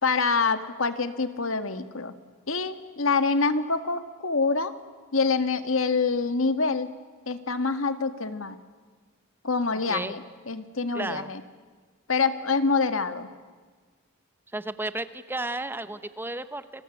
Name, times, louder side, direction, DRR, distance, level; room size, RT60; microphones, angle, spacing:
voice 1, 0.0-2.1 2.5-4.7 5.1-6.9 7.3-8.6 9.4-11.4 12.1-13.3, left 4 dB, 70° left, 10 dB, 1.8 m, -26 dB
voice 2, 9.9-10.2 10.9-11.3 14.5-16.8, right 2 dB, 10° right, 12 dB, 1.0 m, -33 dB
28.5 x 22.5 x 8.1 m, 1.5 s
head